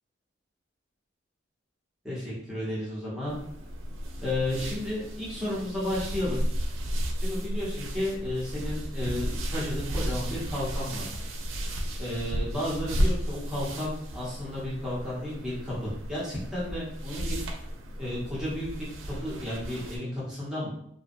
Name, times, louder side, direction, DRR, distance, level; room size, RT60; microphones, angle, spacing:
voice 1, 2.0-3.4 4.2-6.4 7.2-11.0 12.0-17.4 18.0-20.7, left 1 dB, 5° right, -9 dB, 0.8 m, -33 dB
sound 1, 3.3-20.0, equal, 85° right, 0.4 m, -33 dB
2.6 x 2.2 x 2.5 m, 0.71 s
head